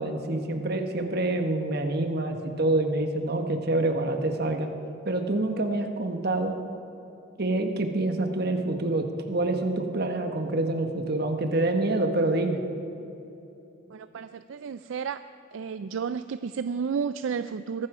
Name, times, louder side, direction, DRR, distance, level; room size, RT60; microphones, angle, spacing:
voice 1, 0.0-4.7 5.0-6.6 7.4-12.6, right 2 dB, 50° right, 5 dB, 1.2 m, -26 dB
voice 2, 13.9-15.2 15.5-17.9, right 6 dB, 65° right, 12 dB, 0.4 m, -32 dB
22.0 x 12.5 x 4.9 m, 3.0 s
head